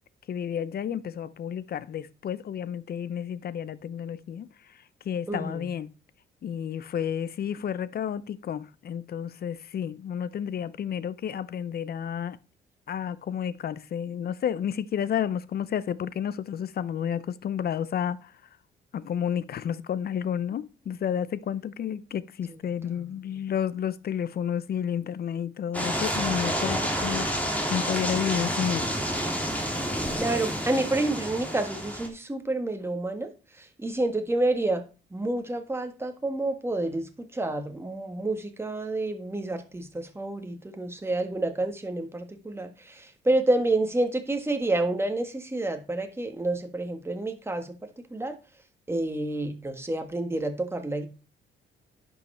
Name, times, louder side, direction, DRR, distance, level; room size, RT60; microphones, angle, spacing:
voice 1, 0.3-4.8 5.0-5.9 6.4-12.4 12.9-18.3 18.9-29.0, left 8 dB, 50° left, 0.7 m, -31 dB
voice 2, 5.3-5.7 22.8-23.1 30.1-33.3 33.6-34.8 35.1-47.8 48.1-48.4 48.9-51.1, right 2 dB, 10° right, 1.6 m, -29 dB
sound 1, 25.7-32.1, equal, 5° left, 2.8 m, -29 dB
10.5 x 5.6 x 4.3 m
cardioid pair, 90°, 20 cm